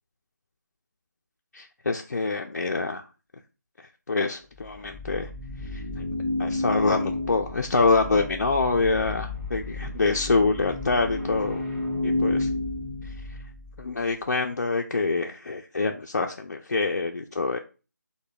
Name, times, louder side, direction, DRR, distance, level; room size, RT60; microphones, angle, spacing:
voice 1, 1.5-3.0 4.1-5.3 5.7-6.0 6.4-11.6 12.0-12.5 13.0-13.1 13.8-17.6, left 3 dB, 55° left, 2 dB, 0.4 m, -25 dB
sound 1, 4.5-13.9, left 2 dB, 20° right, 0.9 m, -31 dB
4.9 x 2.1 x 2.3 m, 0.33 s
figure-of-eight pair, 165°, 10 cm